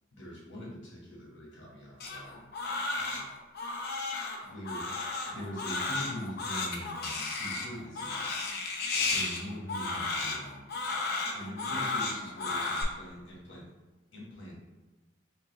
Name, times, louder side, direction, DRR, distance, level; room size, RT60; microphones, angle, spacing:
voice 1, 0.1-2.4 2.9-3.3 4.4-5.0 5.3-8.2 9.1-10.7 11.3-13.7 14.1-14.6, equal, 70° left, -4 dB, 1.4 m, -43 dB
Crying sobbing, 2.0-12.8, left 3 dB, 50° left, 0.6 m, -33 dB
4.7 x 2.4 x 3.2 m, 1.2 s
head